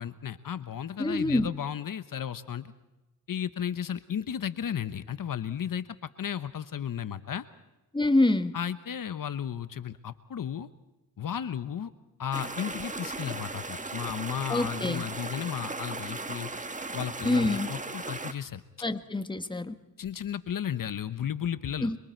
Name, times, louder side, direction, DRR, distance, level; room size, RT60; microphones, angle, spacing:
voice 1, 0.0-2.7 3.3-7.4 8.5-10.7 11.2-11.9 12.2-16.5 16.9-18.6 20.0-21.9, left 9 dB, 60° left, 12 dB, 1.0 m, -34 dB
voice 2, 1.0-1.5 7.9-8.5 14.5-15.0 17.2-17.7 18.8-19.8 21.8-22.0, left 2 dB, 15° left, 10 dB, 1.4 m, -26 dB
sound 1, 12.3-18.3, right 3 dB, 20° right, 1.5 m, -37 dB
27.0 x 22.5 x 4.5 m, 1.0 s
cardioid pair, 65°, 37 cm